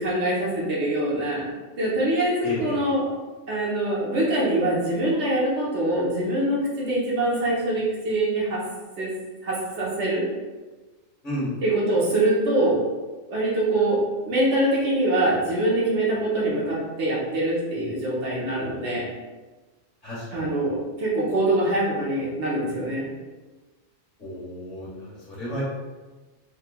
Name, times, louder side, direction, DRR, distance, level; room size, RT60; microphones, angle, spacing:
voice 1, 0.0-1.5 1.8-3.1 3.5-8.6 9.0-9.1 9.4-10.2 11.6-12.8 13.3-19.1 20.3-23.1, right 1 dB, 60° right, -5 dB, 1.2 m, -24 dB
voice 2, 2.4-2.8 11.2-11.5 20.0-20.5 24.2-25.6, equal, 40° left, -8 dB, 1.6 m, -32 dB
4.5 x 2.3 x 2.2 m, 1.2 s
omnidirectional pair, 1.3 m